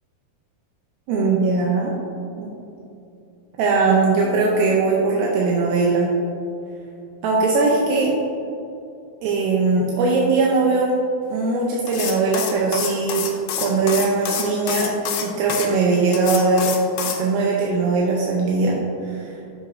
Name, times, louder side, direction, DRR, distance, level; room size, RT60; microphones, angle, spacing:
voice 1, 1.1-1.9 2.4-2.5 3.6-6.1 7.2-8.1 9.2-10.9 11.3-13.2 13.6-14.9 15.2-16.7 17.2-18.8 19.1-19.3, right 3 dB, 85° right, -3 dB, 2.5 m, -20 dB
sound 1, 11.9-15.7 16.1-17.2, left 7 dB, 80° left, 2.5 m, -27 dB
7.5 x 6.1 x 2.6 m, 2.7 s
omnidirectional pair, 4.3 m